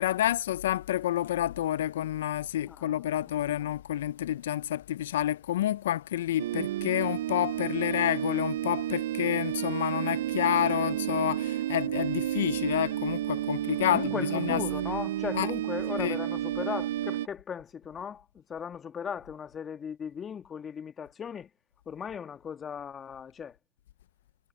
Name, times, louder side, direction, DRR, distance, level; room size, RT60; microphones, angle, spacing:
voice 1, 0.0-14.7 15.3-15.5 16.0-16.2, left 12 dB, 75° left, 0.4 m, -29 dB
voice 2, 2.7-3.1 3.6-3.7 13.9-21.5 21.9-23.5, left 7 dB, 25° left, 1.5 m, -37 dB
sound 1, 6.4-17.3, right 13 dB, 75° right, 0.4 m, -31 dB
hypercardioid pair, 115°, 0 cm